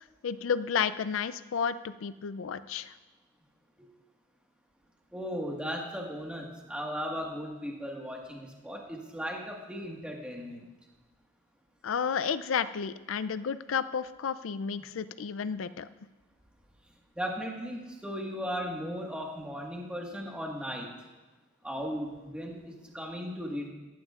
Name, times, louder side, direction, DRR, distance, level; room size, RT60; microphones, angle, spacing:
voice 1, 0.2-2.9 11.8-15.9, left 6 dB, 75° left, 14 dB, 0.4 m, -31 dB
voice 2, 5.1-10.7 17.1-20.9 21.6-23.7, equal, 5° right, -1 dB, 1.6 m, -37 dB
14.0 x 12.5 x 2.4 m, 1.2 s
head